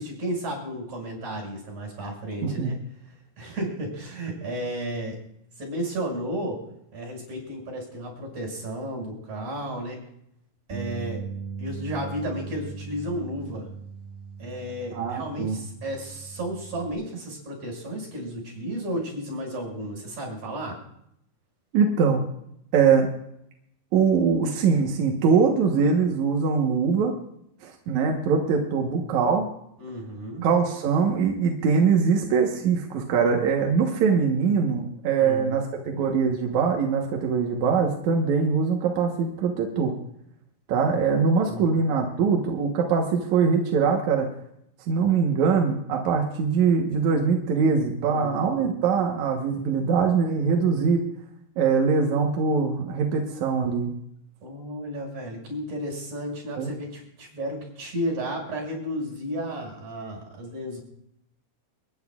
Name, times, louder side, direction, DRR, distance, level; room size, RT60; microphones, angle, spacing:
voice 1, 0.0-2.8 3.4-5.2 5.6-6.6 6.9-10.0 10.7-11.2 11.6-13.7 14.4-20.8 29.8-30.5 33.1-33.3 35.2-35.6 41.4-41.8 48.0-48.8 54.4-60.8, equal, 50° right, 0 dB, 7.0 m, -33 dB
voice 2, 2.4-2.7 15.0-15.6 21.7-22.3 22.7-23.1 23.9-27.1 27.6-29.5 30.4-39.9 40.7-44.3 44.9-51.1 51.6-53.9 56.6-56.7, right 5 dB, 65° right, 1 dB, 2.0 m, -22 dB
Bass guitar, 10.7-16.9, right 6 dB, 20° right, 0.7 m, -39 dB
30.0 x 10.5 x 2.4 m, 0.76 s
omnidirectional pair, 4.4 m